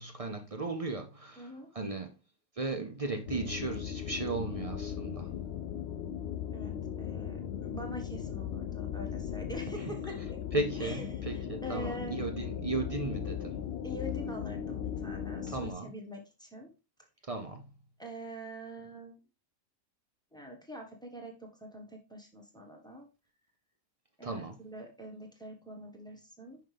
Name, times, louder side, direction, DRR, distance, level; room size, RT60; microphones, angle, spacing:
voice 1, 0.0-2.1 2.6-5.3 10.5-13.6 15.5-15.9 17.3-17.6 24.2-24.6, right 3 dB, 40° right, 0.5 m, -36 dB
voice 2, 1.4-1.7 6.5-10.4 10.8-12.2 13.8-16.7 18.0-19.2 20.3-23.1 24.2-26.6, equal, 5° left, 1.2 m, -44 dB
sound 1, 3.3-15.7, left 9 dB, 65° left, 0.6 m, -38 dB
5.7 x 5.5 x 3.3 m
omnidirectional pair, 1.5 m